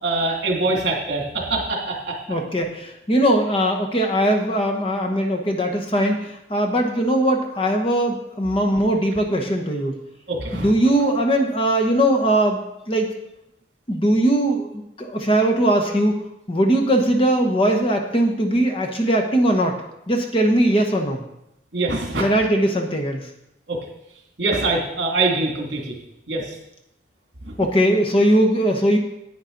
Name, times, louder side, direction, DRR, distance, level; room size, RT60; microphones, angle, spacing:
voice 1, 0.0-2.2 10.3-10.7 21.7-22.2 23.7-23.8 24.4-25.9 26.3-26.4 27.4-27.5, right 3 dB, 60° right, 0 dB, 2.4 m, -23 dB
voice 2, 2.3-10.0 10.5-12.6 12.9-13.1 13.9-16.2 16.5-19.8 20.1-21.2 22.1-23.2 27.6-29.0, right 1 dB, 30° left, 2 dB, 1.0 m, -20 dB
10.0 x 8.9 x 3.9 m, 0.83 s
head